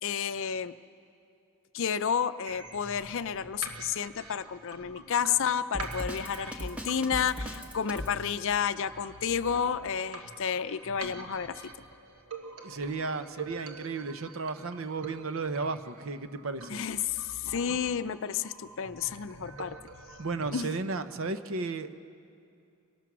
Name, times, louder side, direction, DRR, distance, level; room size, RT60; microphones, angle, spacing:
voice 1, 0.0-0.7 1.7-11.7 16.7-19.8 20.5-20.7, left 7 dB, 60° left, 12 dB, 0.5 m, -31 dB
sound 1, 2.5-20.5, right 3 dB, 80° right, 1.5 m, -46 dB
Drum kit, 5.7-8.2, left 1 dB, 5° right, 1.7 m, -37 dB
voice 2, 12.6-16.8 20.2-22.0, right 3 dB, 60° right, 10 dB, 0.8 m, -34 dB
24.0 x 19.5 x 6.1 m, 2.5 s
head